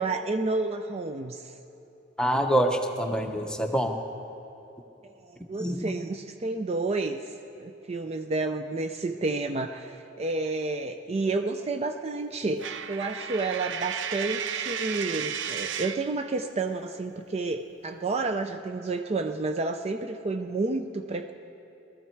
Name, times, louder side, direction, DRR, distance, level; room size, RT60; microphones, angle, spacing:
voice 1, 0.0-1.5 5.0-21.3, right 3 dB, 35° right, 7 dB, 0.4 m, -30 dB
voice 2, 2.2-3.9 5.6-5.9, right 1 dB, 5° left, 3 dB, 0.9 m, -26 dB
Coin (dropping), 12.6-16.1, right 8 dB, 85° right, 0.5 m, -33 dB
19.5 x 14.0 x 4.6 m, 2.9 s
head